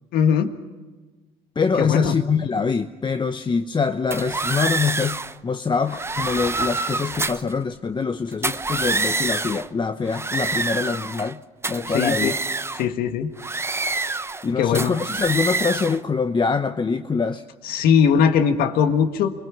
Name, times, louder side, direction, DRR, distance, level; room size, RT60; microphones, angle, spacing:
voice 1, 0.1-0.5 1.8-2.1 11.9-12.3 12.7-13.3 14.5-14.9 17.6-19.3, left 7 dB, 70° left, 8 dB, 1.7 m, -20 dB
voice 2, 1.6-11.4 11.7-12.3 14.4-17.4, left 5 dB, 30° left, 8 dB, 1.0 m, -24 dB
sound 1, 4.1-5.3 5.9-7.5 8.3-9.7 10.0-11.3 11.6-12.9 13.4-14.5 14.7-16.0, right 3 dB, 15° right, 0.8 m, -26 dB
28.0 x 21.5 x 5.9 m, 1.3 s
hypercardioid pair, 65°, 16 cm